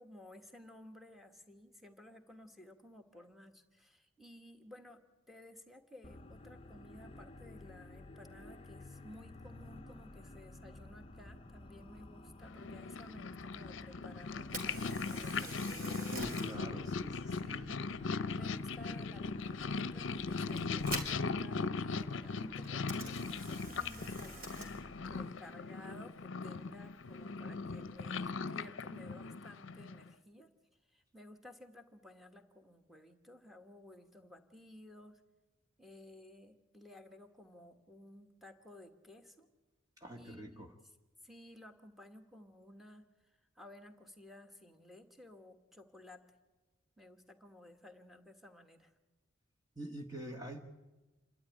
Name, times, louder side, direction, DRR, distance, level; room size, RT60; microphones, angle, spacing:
voice 1, 0.0-15.5 16.5-16.9 17.4-17.8 18.3-24.7 25.0-30.5 30.9-35.2 35.8-39.5 40.1-40.8 41.2-43.1 43.5-46.2 47.0-48.9, left 1 dB, ahead, 4 dB, 1.5 m, -55 dB
sound 1, 6.0-25.2, left 2 dB, 25° left, 0.7 m, -53 dB
Purr, 12.5-30.1, left 4 dB, 65° left, 0.6 m, -39 dB
Camera, 14.4-28.5, right 2 dB, 45° right, 3.7 m, -50 dB
voice 2, 16.1-17.7 40.0-40.7 49.8-50.6, equal, 20° right, 1 dB, 1.1 m, -45 dB
27.5 x 12.5 x 10.0 m, 1.2 s
head